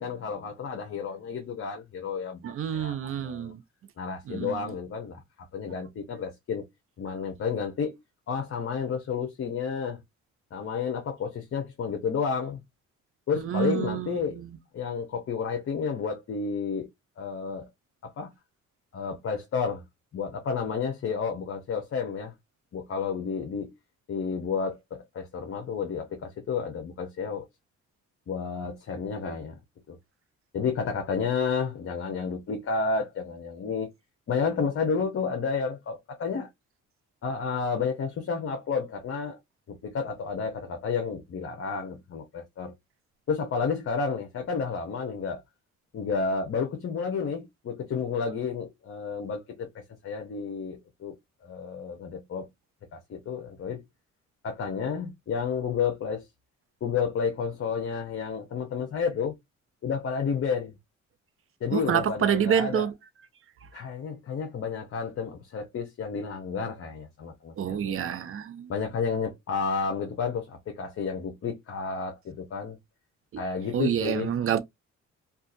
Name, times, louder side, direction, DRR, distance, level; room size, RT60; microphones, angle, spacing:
voice 1, 0.0-3.5 4.0-5.2 5.5-6.6 7.0-8.0 8.3-10.0 10.5-12.6 13.3-14.4 14.7-16.9 17.2-17.7 18.0-18.3 18.9-19.8 20.1-22.3 22.7-23.7 24.1-27.5 28.3-29.6 29.9-30.0 30.5-33.9 34.3-36.5 37.2-39.4 39.7-42.7 43.3-45.4 45.9-51.1 51.4-52.5 52.9-53.8 54.4-56.3 56.8-59.3 59.8-60.7 61.6-62.9 63.7-67.9 68.7-72.8 73.4-74.3, left 5 dB, 50° left, 0.7 m, -31 dB
voice 2, 2.4-3.6 4.3-4.7 13.4-14.6 61.7-62.9 67.6-68.7 73.7-74.6, right 8 dB, 45° right, 0.5 m, -28 dB
2.6 x 2.4 x 2.5 m
cardioid pair, 90°, 30 cm